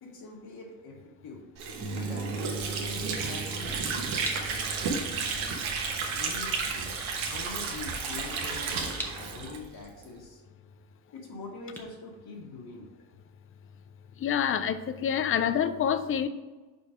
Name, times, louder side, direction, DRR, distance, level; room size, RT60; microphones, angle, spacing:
voice 1, 0.0-1.4 1.9-4.9 5.3-5.8 6.1-6.9 7.3-8.8 9.2-10.4 11.1-12.9, left 3 dB, 50° left, -1 dB, 1.5 m, -44 dB
Water / Sink (filling or washing), 1.6-10.1, right 5 dB, 80° right, 1.3 m, -32 dB
sound 1, 1.8-9.5, right 3 dB, 20° right, 1.4 m, -41 dB
sound 2, 4.2-13.0, equal, 5° left, 0.9 m, -46 dB
voice 2, 14.2-16.3, left 8 dB, 30° left, 11 dB, 0.4 m, -27 dB
5.5 x 4.5 x 4.9 m, 1.2 s
cardioid pair, 120°, 48 cm